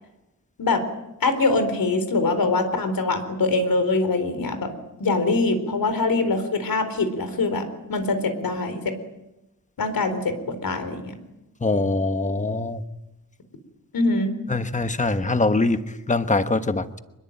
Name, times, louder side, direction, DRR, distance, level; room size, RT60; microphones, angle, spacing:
voice 1, 1.2-4.7 5.0-8.9 9.8-11.1 13.9-14.3, left 3 dB, 75° left, 4.2 m, -23 dB
voice 2, 11.6-12.8 14.5-17.0, left 3 dB, 20° left, 1.2 m, -23 dB
25.0 x 21.5 x 8.9 m
wide cardioid pair, 140°, 35 cm